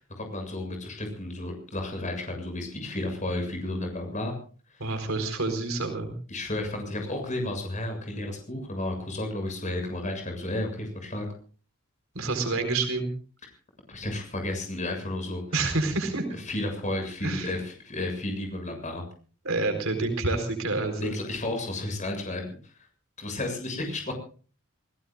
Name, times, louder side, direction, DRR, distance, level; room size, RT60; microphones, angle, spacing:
voice 1, 0.2-4.3 6.3-11.3 13.9-15.4 16.5-19.0 21.0-22.5 23.2-24.1, left 1 dB, 35° left, 4 dB, 7.2 m, -32 dB
voice 2, 4.8-6.1 12.1-13.1 15.5-16.2 17.2-17.6 19.4-21.1, right 3 dB, 75° right, 6 dB, 4.3 m, -28 dB
28.5 x 17.5 x 2.5 m, 0.40 s
head